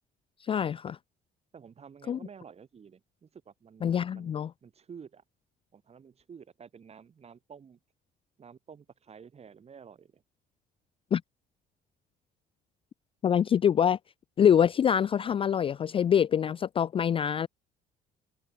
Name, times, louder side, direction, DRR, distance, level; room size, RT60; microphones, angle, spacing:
voice 1, 0.4-1.0 2.1-2.2 3.8-4.5 11.1-11.2 13.2-14.0 14.4-17.5, left 8 dB, 35° left, 0.4 m, -25 dB
voice 2, 1.5-4.3 4.6-5.2 5.7-7.8 8.4-10.2, right 6 dB, 40° right, 6.7 m, -51 dB
cardioid pair, 110°, 17 cm